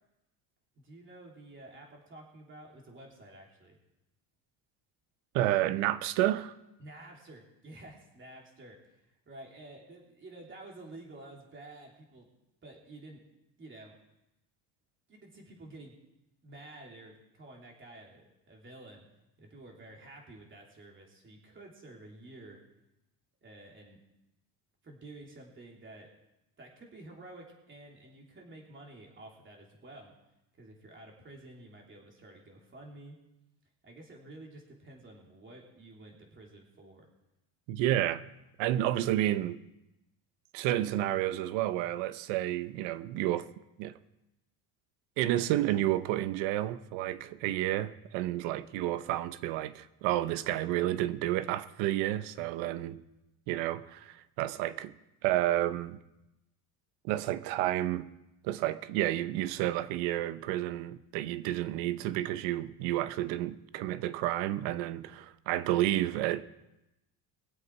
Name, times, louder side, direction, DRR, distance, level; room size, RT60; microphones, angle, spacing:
voice 1, 0.7-3.8 6.8-12.3 12.6-13.2 13.6-14.0 15.1-16.0 16.4-19.0 19.4-22.6 23.4-24.0 24.8-26.1 26.6-30.1 30.6-33.2 33.8-37.1, right 2 dB, 25° right, 3.3 m, -51 dB
voice 2, 5.3-6.5 37.7-38.2 38.6-39.6 40.5-43.5 43.8-43.9 45.2-53.0 53.5-54.9 55.2-56.0 57.0-58.1 58.4-66.4, right 14 dB, 90° right, 0.9 m, -30 dB
22.5 x 8.0 x 4.7 m
cardioid pair, 130°, 42 cm